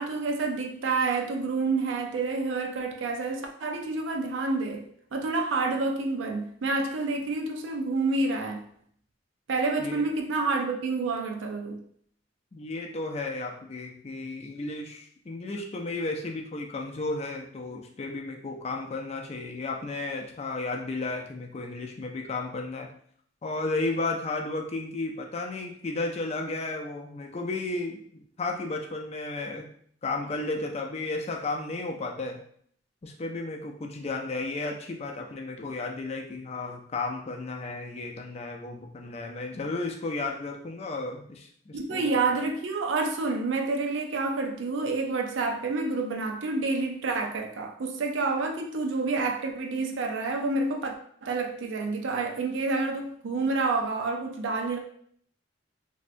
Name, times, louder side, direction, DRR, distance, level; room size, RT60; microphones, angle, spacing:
voice 1, 0.0-4.8 5.1-8.6 9.5-11.8 41.7-50.9 51.2-54.8, right 3 dB, 80° right, 0.4 m, -28 dB
voice 2, 12.5-22.9 23.4-29.7 30.0-32.4 33.0-42.5, left 2 dB, 35° left, 0.4 m, -33 dB
3.2 x 2.7 x 2.5 m
head